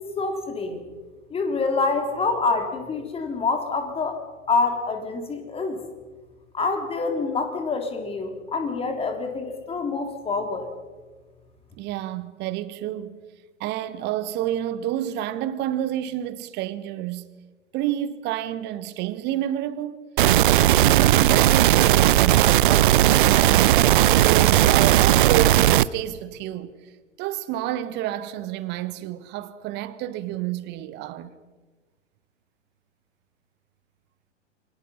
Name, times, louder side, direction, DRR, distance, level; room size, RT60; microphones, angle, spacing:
voice 1, 0.2-0.8 1.3-4.2 4.5-5.8 6.5-10.7, left 4 dB, 15° left, 3.5 m, -26 dB
voice 2, 11.8-13.2 13.6-17.4 17.7-20.0 20.5-23.9 24.2-26.7 27.2-31.4, right 12 dB, 30° right, 1.4 m, -29 dB
sound 1, 20.2-25.9, right 13 dB, 45° right, 0.6 m, -17 dB
28.0 x 24.5 x 5.6 m
figure-of-eight pair, 105°, 36 cm